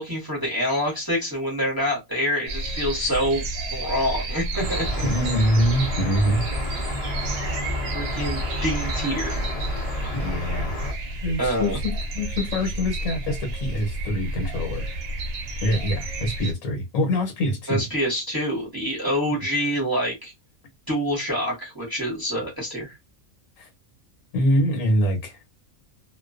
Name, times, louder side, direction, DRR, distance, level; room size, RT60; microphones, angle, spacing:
voice 1, 0.0-3.4 3.7-5.0 7.9-9.5 11.4-11.8 17.7-20.3 20.9-23.0, equal, 20° right, 0.9 m, -26 dB
sound 1, 2.5-16.5, right 2 dB, 75° right, 1.0 m, -31 dB
sound 2, 4.5-10.9, equal, 40° left, 0.5 m, -30 dB
voice 2, 5.0-6.4 10.1-10.7 11.2-14.9 15.6-17.8 23.6-23.7 24.3-25.5, equal, 70° left, 1.1 m, -24 dB
2.4 x 2.2 x 2.3 m
omnidirectional pair, 1.5 m